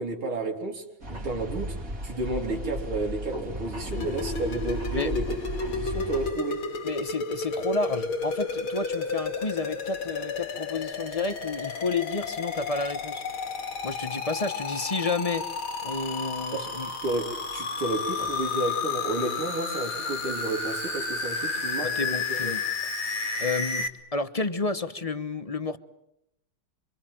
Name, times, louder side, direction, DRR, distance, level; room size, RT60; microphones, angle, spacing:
voice 1, 0.0-1.8 2.0-5.2 5.6-6.7 16.5-16.7 17.0-22.4, right 2 dB, 85° right, 0 dB, 3.9 m, -32 dB
sound 1, 1.0-6.3, equal, 40° right, 3.8 m, -35 dB
sound 2, 3.9-23.9, left 4 dB, 80° left, 3.4 m, -32 dB
voice 2, 6.8-13.2 13.8-15.5 15.8-16.9 21.8-22.7 23.4-25.8, left 3 dB, 30° left, 11 dB, 0.7 m, -31 dB
27.5 x 25.5 x 7.7 m, 0.84 s
omnidirectional pair, 2.3 m